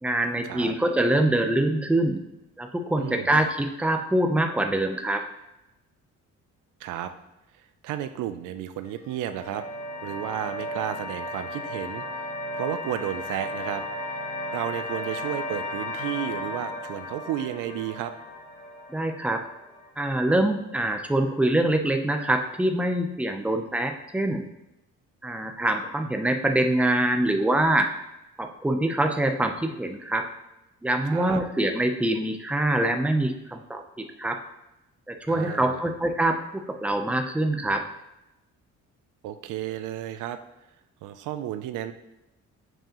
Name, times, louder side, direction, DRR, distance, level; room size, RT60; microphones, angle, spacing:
voice 1, 0.0-2.2 2.6-5.2 18.9-19.4 20.0-24.4 25.2-27.9 28.4-30.3 30.8-34.4 35.1-37.8, right 1 dB, 5° right, 5 dB, 0.6 m, -24 dB
voice 2, 3.0-3.3 6.8-7.1 7.8-9.7 10.0-12.3 12.5-18.1 31.0-31.4 35.3-35.9 39.2-40.4 41.0-41.9, right 11 dB, 85° right, 10 dB, 0.5 m, -33 dB
sound 1, 8.8-19.9, left 1 dB, 85° left, 2.4 m, -35 dB
7.7 x 4.6 x 3.0 m, 0.92 s
cardioid pair, 90°, 30 cm